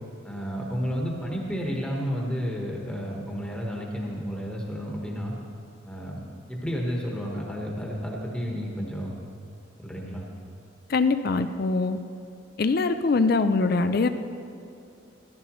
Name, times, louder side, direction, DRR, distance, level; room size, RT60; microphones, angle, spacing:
voice 1, 0.2-5.3 5.8-6.2 6.5-9.1 9.8-10.2, equal, 5° left, -2 dB, 1.2 m, -31 dB
voice 2, 10.9-12.0 12.6-14.1, left 3 dB, 50° left, 10 dB, 0.4 m, -23 dB
14.0 x 12.0 x 3.1 m, 2.7 s
head